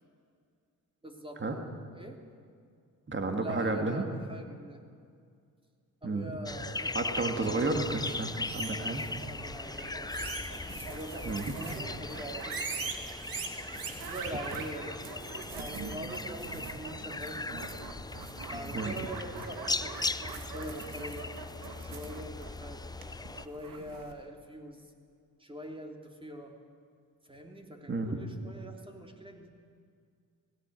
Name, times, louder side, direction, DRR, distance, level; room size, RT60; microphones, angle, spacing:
voice 1, 1.0-1.7 1.9-2.2 3.4-4.9 6.0-7.5 8.7-10.2 10.9-12.7 14.1-17.8 18.5-21.3 21.8-22.8 23.3-24.8 25.4-26.6 27.3-29.5, right 1 dB, 15° right, 2 dB, 3.2 m, -44 dB
voice 2, 3.1-4.0 6.0-6.2 6.9-9.0 11.3-11.5 18.7-18.9 27.9-28.2, right 3 dB, 35° right, 4 dB, 2.3 m, -31 dB
sound 1, 6.5-23.5, left 3 dB, 10° left, 0.5 m, -39 dB
sound 2, 7.6-24.1, right 5 dB, 75° right, 2.3 m, -43 dB
17.5 x 17.0 x 9.2 m, 2.2 s
cardioid pair, 75°, 35 cm